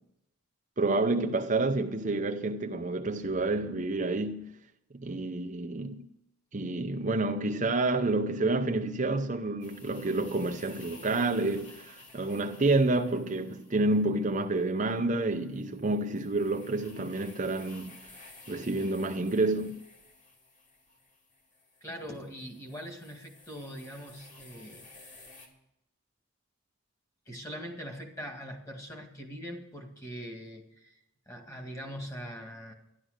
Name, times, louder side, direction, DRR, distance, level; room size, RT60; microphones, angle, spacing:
voice 1, 0.8-4.5 4.9-6.1 6.5-18.0 18.5-19.8, right 2 dB, 35° right, 0.6 m, -29 dB
sound 1, 9.6-25.5, left 3 dB, 35° left, 2.6 m, -54 dB
voice 2, 21.8-24.9 27.3-31.0 31.3-32.7, equal, 15° left, 2.0 m, -42 dB
12.5 x 11.5 x 6.4 m
head